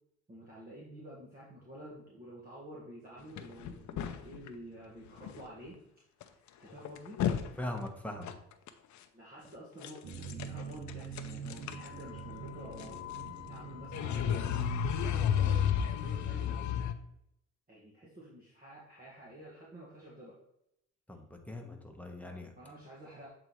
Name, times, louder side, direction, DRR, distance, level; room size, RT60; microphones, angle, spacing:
voice 1, 0.3-5.8 6.2-7.2 9.1-13.0 13.5-16.8 17.7-20.4 22.6-23.3, equal, 30° right, -6 dB, 1.6 m, -50 dB
sound 1, 3.4-4.5 5.2-5.4 5.7-5.8 6.2-6.3 6.7-7.5 7.8-7.9 8.2-8.7 9.8-10.6 10.9-16.9, left 8 dB, 70° left, 0.6 m, -33 dB
voice 2, 7.6-8.3 21.1-22.5, left 1 dB, 5° left, 2 dB, 1.1 m, -41 dB
sound 2, 10.0-15.3, right 6 dB, 75° right, 0.8 m, -46 dB
7.7 x 4.0 x 3.0 m, 0.78 s
cardioid pair, 90°, 30 cm